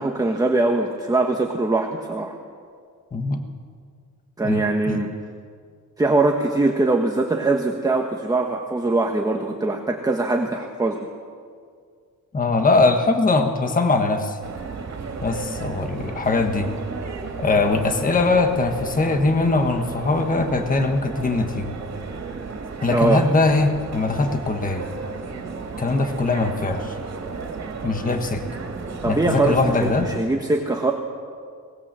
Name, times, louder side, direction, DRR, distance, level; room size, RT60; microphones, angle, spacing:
voice 1, 0.0-2.3 4.4-5.1 6.0-11.1 22.9-23.2 29.0-30.9, right 2 dB, 10° right, 2 dB, 1.2 m, -22 dB
voice 2, 3.1-3.4 4.4-5.0 12.3-14.4 15.2-16.7 17.4-21.7 22.8-24.9 25.8-27.0 27.8-28.4 29.1-30.1, left 3 dB, 25° left, 5 dB, 1.4 m, -21 dB
sound 1, 14.4-30.2, right 4 dB, 50° right, 2.9 m, -33 dB
22.5 x 19.5 x 7.5 m, 2.1 s
wide cardioid pair, 175°, 34 cm